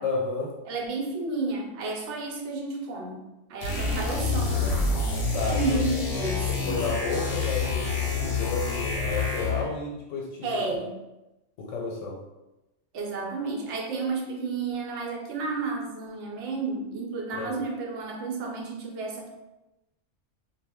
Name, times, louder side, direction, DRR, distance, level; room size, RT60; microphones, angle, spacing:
voice 1, 0.0-0.5 5.3-5.8 6.2-10.8 11.6-12.2 17.3-17.6, left 3 dB, 85° left, -2 dB, 0.9 m, -32 dB
voice 2, 0.7-3.2 3.5-5.0 5.5-6.8 10.4-11.0 12.9-19.3, right 3 dB, 75° right, 1 dB, 0.9 m, -31 dB
sound 1, 3.6-9.7, left 4 dB, 60° left, 0.8 m, -27 dB
2.1 x 2.0 x 3.5 m, 0.98 s
omnidirectional pair, 1.2 m